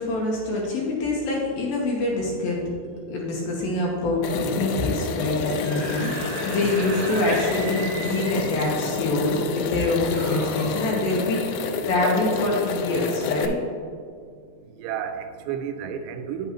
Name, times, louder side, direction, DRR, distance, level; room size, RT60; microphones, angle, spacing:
voice 1, 0.0-2.6 3.1-6.1 6.5-11.4 11.9-13.6, left 2 dB, 70° left, -2 dB, 2.5 m, -25 dB
sound 1, 4.2-13.5, left 5 dB, 90° left, 2.8 m, -29 dB
Screaming / Screech, 5.6-8.8 9.8-10.9, right 3 dB, 70° right, 2.2 m, -36 dB
voice 2, 14.8-16.5, right 8 dB, 90° right, 7 dB, 2.8 m, -32 dB
9.3 x 8.1 x 3.0 m, 2.2 s
omnidirectional pair, 4.8 m